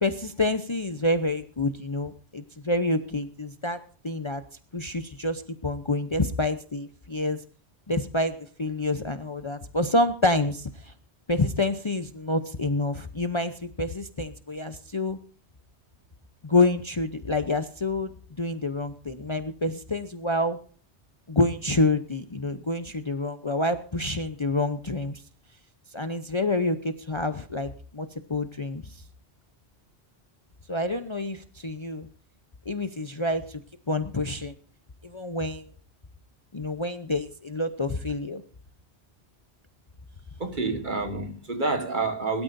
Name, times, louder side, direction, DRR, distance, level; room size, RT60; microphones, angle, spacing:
voice 1, 0.0-3.8 4.0-4.4 4.7-7.4 7.9-10.9 11.3-15.2 16.4-18.1 18.4-20.6 21.3-25.2 25.9-29.0 30.7-32.1 32.7-33.6 33.9-34.5 35.0-35.7 36.5-38.4, left 2 dB, 30° left, 0.8 m, -27 dB
voice 2, 40.4-42.4, right 3 dB, 45° right, 1.9 m, -28 dB
22.0 x 12.5 x 2.6 m
omnidirectional pair, 1.1 m